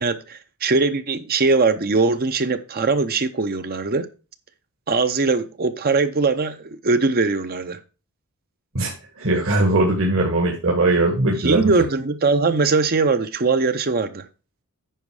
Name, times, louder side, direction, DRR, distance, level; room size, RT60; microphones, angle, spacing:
voice 1, 0.0-4.1 4.9-7.8 11.4-14.3, right 3 dB, 45° right, 0.7 m, -21 dB
voice 2, 9.2-11.7, right 2 dB, 65° right, 1.8 m, -20 dB
9.1 x 5.3 x 4.8 m
head